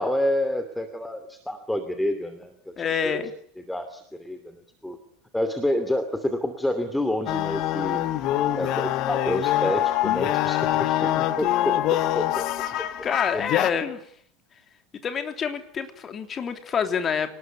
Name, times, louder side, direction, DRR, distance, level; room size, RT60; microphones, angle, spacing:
voice 1, 0.0-2.7 3.7-5.0 5.3-8.0 8.5-12.5 13.3-13.4, left 1 dB, 5° left, 9 dB, 2.7 m, -28 dB
voice 2, 2.8-3.3 13.0-14.0 15.0-17.4, left 7 dB, 30° left, 7 dB, 3.3 m, -27 dB
sound 1, 7.3-13.7, left 14 dB, 45° left, 1.6 m, -24 dB
27.0 x 19.5 x 9.6 m, 0.67 s
figure-of-eight pair, 75°, 0 cm